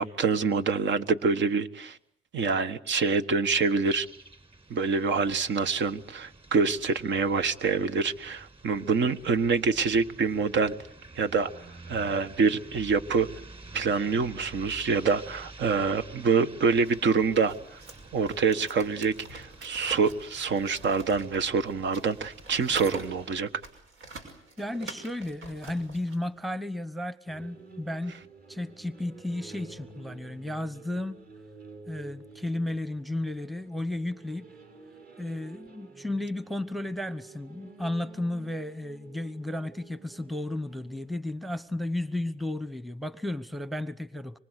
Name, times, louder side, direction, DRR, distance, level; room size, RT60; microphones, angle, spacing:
voice 1, 0.0-2.0 2.3-4.1 4.7-10.7 11.2-11.5 11.9-13.3 13.7-17.8 18.1-23.5, right 5 dB, 65° right, 1.4 m, -26 dB
sound 1, 3.8-23.4, right 2 dB, 30° right, 4.7 m, -50 dB
sound 2, 16.8-26.2, right 3 dB, 85° right, 5.9 m, -45 dB
voice 2, 24.6-28.2 28.5-31.2 31.9-34.5 35.2-44.4, left 1 dB, ahead, 1.0 m, -33 dB
sound 3, 27.2-41.1, right 4 dB, 50° right, 5.9 m, -50 dB
25.5 x 24.5 x 8.2 m
cardioid pair, 90°, 20 cm